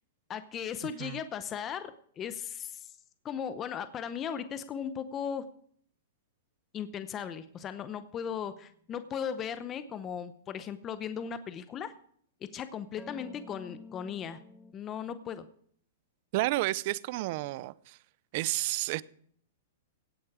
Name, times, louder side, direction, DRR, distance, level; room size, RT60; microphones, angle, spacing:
voice 1, 0.3-2.9 3.2-5.4 6.7-11.9 12.5-14.4 14.7-15.4, left 8 dB, 25° left, 0.7 m, -37 dB
sound 1, 13.0-14.7, left 2 dB, 5° left, 1.2 m, -49 dB
voice 2, 16.3-18.0 18.3-19.0, right 18 dB, 50° right, 0.5 m, -31 dB
17.0 x 8.3 x 4.9 m
hypercardioid pair, 140°, 0 cm